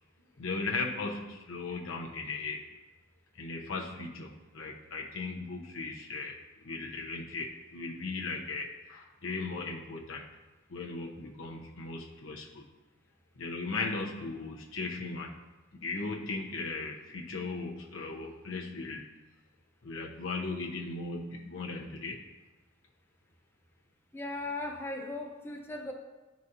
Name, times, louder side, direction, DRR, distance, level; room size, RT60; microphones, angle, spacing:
voice 1, 0.4-2.6 3.3-6.4 6.6-10.2 10.7-12.6 13.4-15.3 15.7-19.0 19.8-22.2, left 3 dB, 90° left, -1 dB, 0.7 m, -37 dB
voice 2, 24.1-25.9, left 2 dB, 10° left, 2 dB, 0.7 m, -37 dB
10.5 x 4.0 x 2.7 m, 1.1 s
head